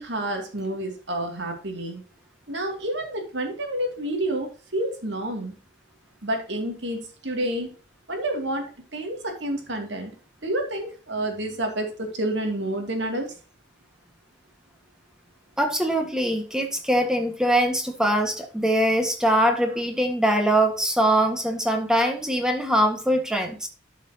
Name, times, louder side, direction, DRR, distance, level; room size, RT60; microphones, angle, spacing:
voice 1, 0.0-2.0 2.5-5.5 6.2-7.7 8.1-8.7 8.9-10.1 10.4-13.3, right 1 dB, 70° right, 3 dB, 2.5 m, -29 dB
voice 2, 15.6-23.7, right 1 dB, 5° right, 4 dB, 1.6 m, -22 dB
12.0 x 5.9 x 2.9 m, 0.35 s
head